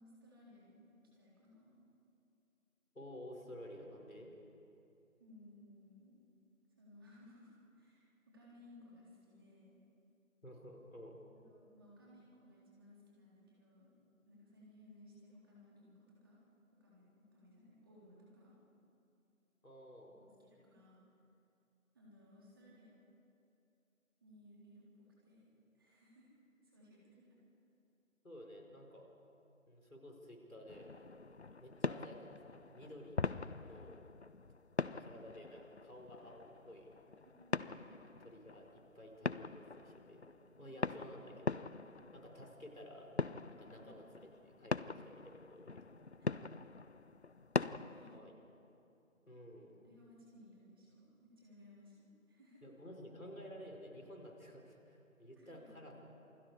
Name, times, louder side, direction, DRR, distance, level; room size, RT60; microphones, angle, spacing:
voice 1, 0.0-1.8 5.2-6.2 6.8-9.8 11.5-13.9 14.2-16.4 16.7-18.6 20.2-21.0 21.9-22.9 24.2-25.4 25.7-26.3 26.6-27.4 37.2-37.8 40.6-40.8 43.8-44.1 46.2-46.4 47.7-48.3 49.8-52.6 55.4-55.9, left 1 dB, 15° right, -6 dB, 3.9 m, -61 dB
voice 2, 2.9-4.3 10.4-11.2 19.6-20.2 28.2-29.1 29.7-30.9 31.3-33.2 33.6-34.0 35.0-37.0 38.2-41.7 42.1-43.1 43.6-46.0 48.1-48.3 49.3-49.8 52.6-55.9, equal, 80° left, 1 dB, 4.8 m, -53 dB
sound 1, 30.7-48.2, left 4 dB, 55° left, 0.5 m, -42 dB
28.0 x 21.5 x 4.9 m, 2.7 s
figure-of-eight pair, 165°, 41 cm